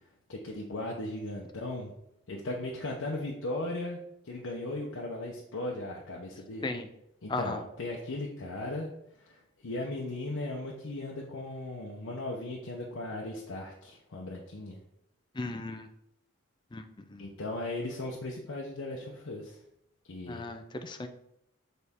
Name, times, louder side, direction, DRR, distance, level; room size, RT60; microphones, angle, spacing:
voice 1, 0.3-1.9 2.3-6.7 7.2-8.9 9.2-14.8 17.2-19.6 20.1-20.5, left 2 dB, 80° left, -2 dB, 0.8 m, -37 dB
voice 2, 7.3-7.6 15.4-15.9 16.7-17.3 20.3-21.1, left 2 dB, 20° left, 7 dB, 0.4 m, -36 dB
6.7 x 4.0 x 3.6 m, 0.81 s
head